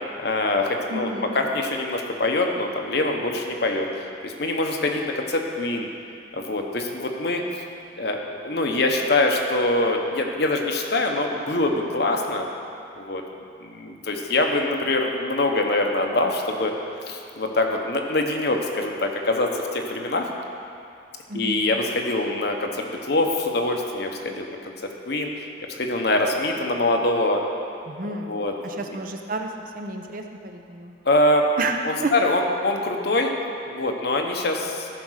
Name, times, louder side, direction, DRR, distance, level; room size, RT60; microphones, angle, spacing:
voice 1, 0.2-3.9 4.2-5.9 6.3-7.4 8.0-12.5 13.0-13.2 13.6-16.8 17.1-20.3 21.3-24.5 24.8-25.3 25.7-27.4 28.1-28.8 31.0-31.5 31.8-33.3 33.7-34.9, left 2 dB, 55° left, 2 dB, 1.0 m, -24 dB
voice 2, 0.9-1.4 21.3-21.6 27.9-29.5 29.7-30.9 31.6-32.1, right 2 dB, 45° right, 4 dB, 0.7 m, -31 dB
14.5 x 5.3 x 6.4 m, 2.6 s
head